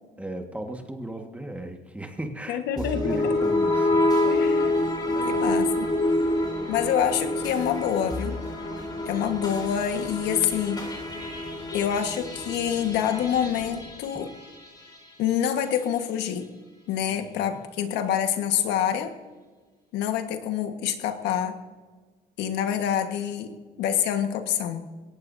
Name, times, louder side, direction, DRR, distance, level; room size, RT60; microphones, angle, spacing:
voice 1, 0.2-4.1 5.0-5.6 6.2-6.4 6.7-6.9 17.1-17.6, right 1 dB, 10° right, 4 dB, 1.6 m, -36 dB
voice 2, 2.5-3.3 4.2-4.8 5.2-5.9 6.7-8.4 9.1-10.8 11.7-14.3 15.2-16.5 16.9-19.1 19.9-21.6 22.4-24.9, left 9 dB, 85° left, 7 dB, 1.6 m, -26 dB
sound 1, 2.8-15.1, left 2 dB, 25° left, 3.7 m, -27 dB
21.0 x 18.0 x 2.7 m, 1.4 s
cardioid pair, 110°, 17 cm